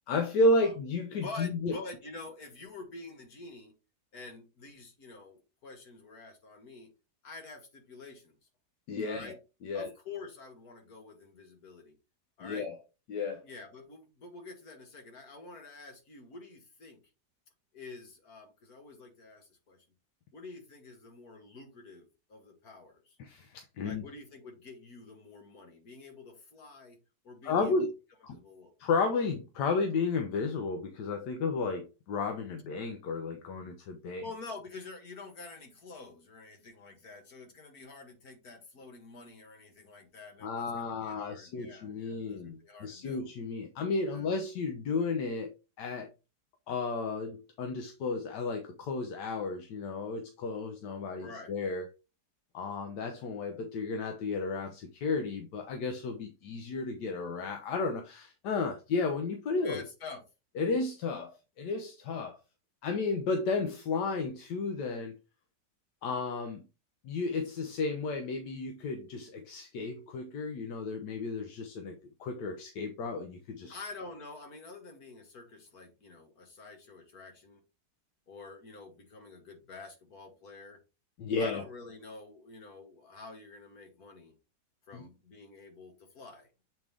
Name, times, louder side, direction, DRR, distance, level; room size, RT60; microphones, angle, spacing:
voice 1, 0.1-1.8 8.9-9.3 9.6-9.9 12.4-12.7 13.1-13.4 23.2-24.0 27.4-27.9 28.2-28.4 28.8-34.2 40.4-46.1 46.7-51.9 52.5-59.8 60.6-62.4 62.8-65.2 66.0-66.6 67.0-73.7 81.2-81.6 84.9-85.0, left 3 dB, 85° left, 1.4 m, -33 dB
voice 2, 1.2-3.7 4.1-6.9 7.2-8.4 9.0-9.4 9.7-12.0 12.4-12.7 13.4-17.0 17.7-19.8 20.3-23.2 23.8-27.0 27.2-27.7 28.3-28.7 34.2-43.2 44.1-44.3 51.2-51.5 59.6-60.2 73.0-73.1 73.7-77.6 78.3-80.8 81.4-84.3 84.9-86.5, left 3 dB, 60° left, 2.1 m, -47 dB
7.8 x 3.7 x 3.4 m
omnidirectional pair, 1.8 m